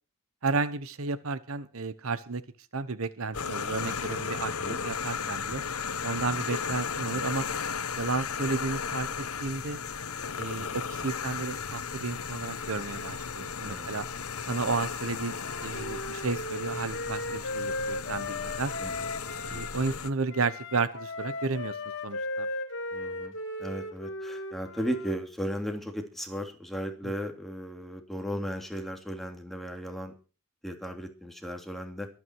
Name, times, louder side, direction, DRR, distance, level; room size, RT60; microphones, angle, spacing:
voice 1, 0.4-2.4 2.7-5.6 6.0-7.5 8.0-9.8 10.4-14.1 14.5-15.4 15.6-18.7 19.5-21.8 22.0-22.5 27.0-27.1, right 4 dB, 70° right, 15 dB, 1.0 m, -32 dB
sound 1, 3.3-20.1, left 6 dB, 85° left, 1.3 m, -35 dB
Wind instrument woodwind instrument, 15.1-19.7 20.3-25.2, left 2 dB, 60° left, 3.0 m, -36 dB
voice 2, 22.9-23.3 23.6-30.1 30.6-32.1, equal, ahead, 3 dB, 2.9 m, -36 dB
23.5 x 9.6 x 4.7 m, 0.35 s
head